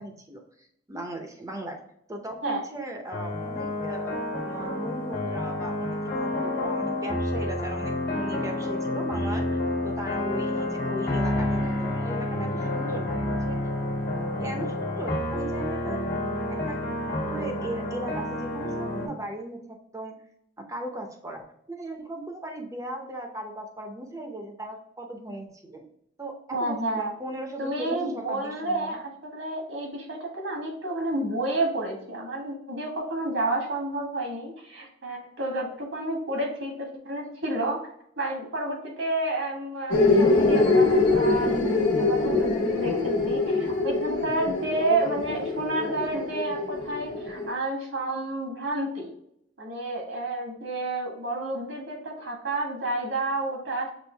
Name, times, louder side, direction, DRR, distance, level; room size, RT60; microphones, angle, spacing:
voice 1, 0.0-1.8 2.1-13.6 14.4-16.1 16.5-16.8 17.2-20.2 20.7-25.8 26.2-29.0, right 1 dB, 15° right, 3 dB, 0.7 m, -38 dB
sound 1, 3.1-19.1, left 1 dB, 50° left, 1.4 m, -29 dB
voice 2, 26.5-27.1 27.6-37.8 38.2-49.1 49.6-53.9, right 2 dB, 75° right, 0 dB, 1.5 m, -30 dB
sound 2, 39.9-47.5, left 3 dB, 80° left, 1.3 m, -24 dB
6.1 x 2.5 x 3.3 m, 0.72 s
head